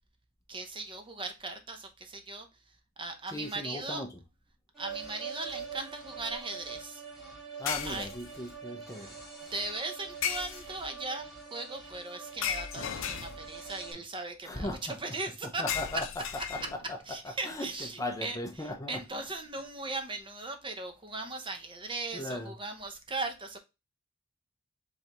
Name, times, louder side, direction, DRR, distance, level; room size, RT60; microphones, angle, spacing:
voice 1, 0.5-2.5 3.0-4.0 4.8-7.0 7.8-8.1 9.5-15.6 15.9-16.0 16.6-23.6, right 3 dB, 25° right, 0.8 m, -38 dB
voice 2, 3.3-4.1 7.6-9.1 14.5-14.8 15.6-16.0 16.5-16.6 16.9-17.0 17.5-17.7 18.0-19.0 22.1-22.5, left 1 dB, 15° left, 0.6 m, -37 dB
sound 1, 4.7-13.9, right 6 dB, ahead, 2.0 m, -45 dB
sound 2, 5.6-5.8 7.7-8.5 10.2-11.0 12.4-13.7 15.7-17.0, left 8 dB, 65° left, 0.6 m, -36 dB
5.4 x 3.3 x 2.9 m
head